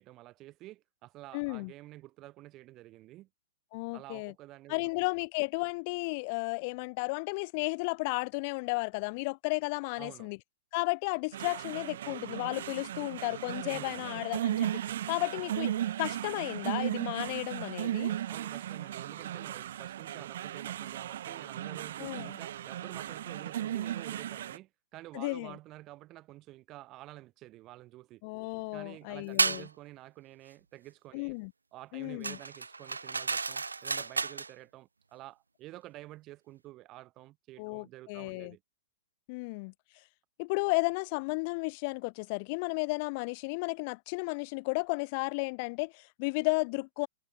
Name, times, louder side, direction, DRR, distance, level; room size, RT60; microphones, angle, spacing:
voice 1, 0.0-3.3 3.9-4.9 10.0-10.3 13.7-14.2 18.3-28.2 28.7-31.4 31.7-38.6, right 17 dB, 30° right, 3.3 m, -50 dB
voice 2, 1.3-1.7 3.7-4.3 4.7-10.4 10.7-14.8 15.1-15.7 16.0-18.1 22.0-22.4 25.1-25.5 28.2-29.7 31.1-31.5 31.9-32.4 37.6-38.5 39.3-39.7 40.4-47.1, left 30 dB, 40° left, 0.8 m, -33 dB
sound 1, 11.3-24.6, right 11 dB, 55° right, 1.1 m, -36 dB
sound 2, 29.4-29.7 32.2-34.5, right 4 dB, 80° right, 0.8 m, -31 dB
figure-of-eight pair, 110°, 0 cm